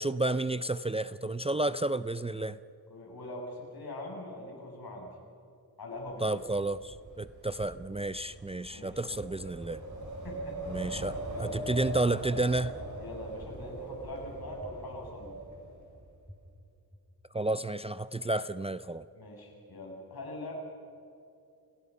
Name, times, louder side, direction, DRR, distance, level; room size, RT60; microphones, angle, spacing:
voice 1, 0.0-2.6 6.2-9.8 10.7-12.8 17.3-19.0, right 2 dB, 15° right, 14 dB, 0.4 m, -31 dB
voice 2, 2.9-5.1 5.8-6.4 8.7-9.2 10.2-11.8 13.0-15.4 19.1-20.5, left 1 dB, 70° left, -1 dB, 7.2 m, -43 dB
Wind, 6.1-16.2, right 1 dB, 50° right, 5.5 m, -41 dB
sound 1, 9.6-9.7 10.2-10.3 11.3-11.4 11.9-12.0 12.9-13.0 13.6-13.7 14.6-14.7 15.2-15.3 16.3-16.4 16.9-17.0, equal, ahead, 3.9 m, -48 dB
29.5 x 18.0 x 5.5 m, 2.6 s
wide cardioid pair, 85°, 38 cm